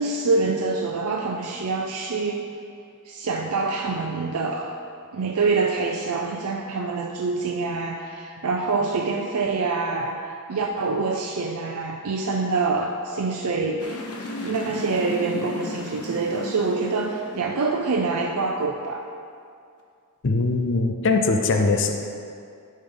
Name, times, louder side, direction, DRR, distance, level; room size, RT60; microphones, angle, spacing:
voice 1, 0.0-2.5 3.0-4.8 5.1-10.2 10.5-14.0 14.4-19.0, right 3 dB, 70° right, 0 dB, 0.5 m, -25 dB
sound 1, 13.8-18.2, left 1 dB, 80° left, 0.9 m, -35 dB
voice 2, 20.2-21.9, left 3 dB, 55° left, 4 dB, 0.6 m, -21 dB
10.5 x 5.2 x 3.8 m, 2.4 s
head